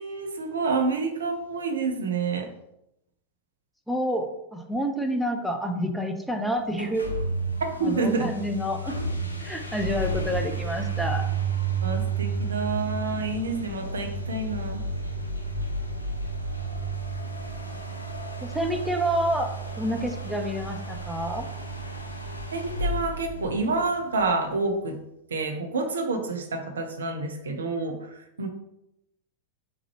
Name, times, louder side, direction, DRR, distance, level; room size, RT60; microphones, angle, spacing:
voice 1, 0.0-2.5 7.8-8.3 11.8-14.8 22.5-25.0 25.3-28.5, right 3 dB, 70° right, 5 dB, 0.6 m, -28 dB
voice 2, 3.9-7.1 7.8-9.0 9.4-11.2 18.4-21.5, equal, ahead, 4 dB, 0.5 m, -28 dB
sound 1, 6.7-24.2, right 3 dB, 85° left, 0.4 m, -32 dB
3.6 x 3.0 x 3.1 m, 0.83 s
figure-of-eight pair, 90°, 0 cm